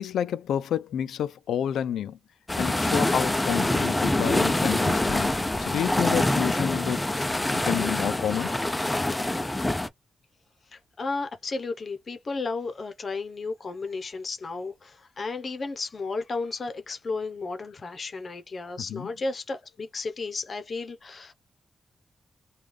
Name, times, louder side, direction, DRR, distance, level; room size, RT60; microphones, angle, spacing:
voice 1, 0.0-2.2 2.6-5.3 5.6-7.2 7.5-8.5 18.8-19.1, left 9 dB, 85° left, 0.4 m, -29 dB
sound 1, 2.5-9.9, left 1 dB, 15° left, 0.5 m, -25 dB
voice 2, 10.7-21.3, left 3 dB, 50° left, 0.8 m, -33 dB
3.3 x 2.3 x 3.2 m
cardioid pair, 65°, 0 cm